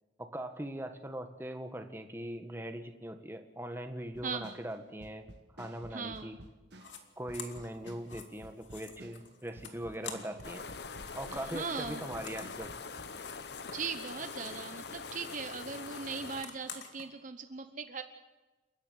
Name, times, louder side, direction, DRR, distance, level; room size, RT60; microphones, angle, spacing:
voice 1, 0.2-5.3 5.6-6.4 7.2-10.7 11.1-12.7, right 1 dB, 15° right, 6 dB, 1.6 m, -41 dB
sound 1, 4.1-7.0 7.3-11.6 11.8-13.1, right 1 dB, 65° right, 1.7 m, -53 dB
voice 2, 4.2-4.5 5.9-6.4 11.3-12.0 13.7-18.0, right 5 dB, 45° right, 8 dB, 0.9 m, -39 dB
sound 2, 6.8-7.0 7.3-10.6 10.8-14.7 15.0-17.1, left 6 dB, 85° left, 2.5 m, -49 dB
sound 3, 10.4-16.4, left 5 dB, 65° left, 1.0 m, -44 dB
29.0 x 11.5 x 8.4 m, 1.2 s
head